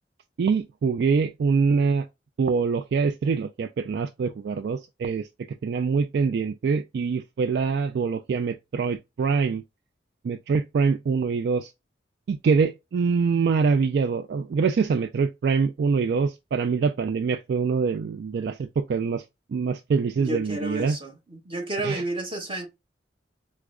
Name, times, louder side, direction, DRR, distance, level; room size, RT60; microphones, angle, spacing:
voice 1, 0.4-2.1 2.4-5.3 5.6-9.6 10.2-11.7 12.3-19.2 19.5-21.0 21.8-22.0, right 5 dB, 60° right, 0.3 m, -24 dB
voice 2, 20.1-22.7, right 2 dB, 30° right, 1.0 m, -31 dB
4.7 x 2.1 x 2.3 m
head